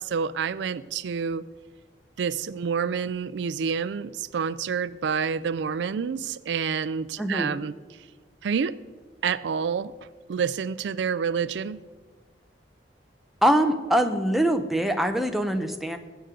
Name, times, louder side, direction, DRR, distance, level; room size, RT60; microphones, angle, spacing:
voice 1, 0.0-1.4 2.2-7.7 8.4-8.8 9.2-9.9 10.3-11.8, right 6 dB, 75° right, 16 dB, 0.4 m, -28 dB
voice 2, 7.2-7.6 13.4-16.0, right 1 dB, ahead, 5 dB, 0.7 m, -23 dB
19.5 x 8.1 x 3.8 m, 1.3 s
head